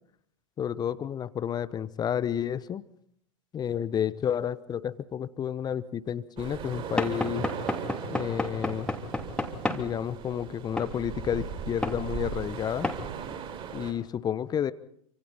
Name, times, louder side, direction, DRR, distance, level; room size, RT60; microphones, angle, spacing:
voice 1, 0.6-2.8 3.5-7.5 8.1-8.9 9.7-12.9 13.7-14.7, left 9 dB, 20° left, 16 dB, 1.0 m, -31 dB
sound 1, 6.4-13.9, right 7 dB, 30° right, 6.2 m, -38 dB
Knock / Wood, 7.0-9.9 10.8-10.9 11.8-12.0 12.8-13.0, left 2 dB, 5° left, 3.0 m, -30 dB
27.5 x 26.0 x 4.3 m, 0.68 s
figure-of-eight pair, 90°, 18 cm